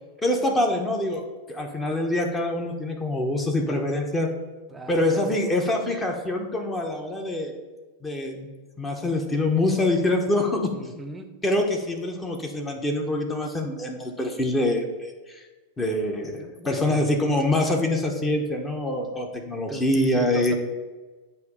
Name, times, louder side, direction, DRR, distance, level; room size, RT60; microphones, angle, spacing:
voice 1, 0.2-1.2 1.5-4.3 4.9-7.5 8.0-8.5 8.8-10.7 11.4-15.5 15.8-20.6, left 1 dB, 15° left, 2 dB, 0.9 m, -25 dB
voice 2, 4.7-5.7 10.7-11.3 16.4-17.1 19.7-20.5, right 2 dB, 10° right, 5 dB, 0.7 m, -38 dB
8.1 x 2.8 x 5.2 m, 1.3 s
figure-of-eight pair, 90°, 0 cm